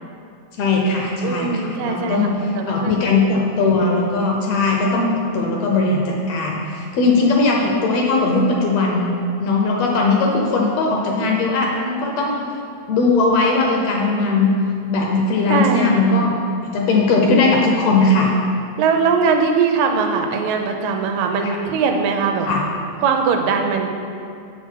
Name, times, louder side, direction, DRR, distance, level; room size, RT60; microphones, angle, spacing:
voice 1, 0.6-9.1 9.4-12.4 12.9-14.5 14.9-16.4 16.6-18.3 21.4-21.6 22.5-22.6, left 3 dB, 75° left, -1 dB, 1.7 m, -19 dB
voice 2, 1.2-3.2 15.5-16.2 18.8-22.5 23.0-23.9, right 5 dB, 80° right, 4 dB, 2.0 m, -21 dB
7.2 x 5.9 x 4.5 m, 2.5 s
omnidirectional pair, 3.4 m